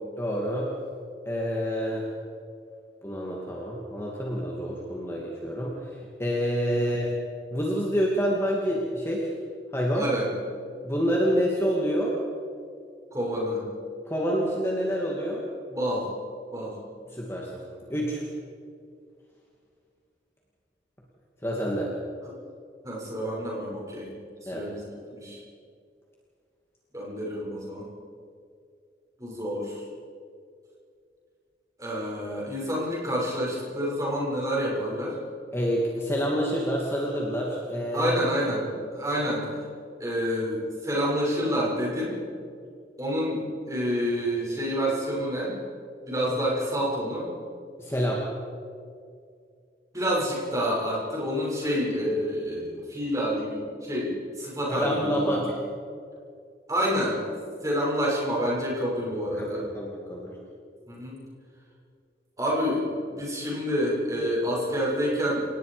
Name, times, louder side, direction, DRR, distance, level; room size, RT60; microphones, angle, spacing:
voice 1, 0.2-0.7 1.3-2.1 3.0-7.1 7.5-9.3 9.7-10.1 10.8-12.1 14.1-15.4 17.1-17.6 17.9-18.2 21.4-21.9 24.5-24.7 35.5-38.2 46.3-46.4 47.8-48.2 54.7-55.5 59.4-60.4, equal, 15° left, -3 dB, 2.5 m, -27 dB
voice 2, 9.9-10.3 13.1-13.7 15.7-16.1 16.5-16.8 22.2-22.3 22.8-24.1 24.4-25.4 26.9-27.9 29.2-29.8 31.8-35.2 37.9-39.6 40.0-42.2 43.0-45.6 46.1-47.3 49.9-55.4 56.7-57.2 57.6-59.7 60.9-61.2 62.4-65.5, equal, 20° right, -4 dB, 6.9 m, -28 dB
29.5 x 18.5 x 5.2 m, 2.3 s
head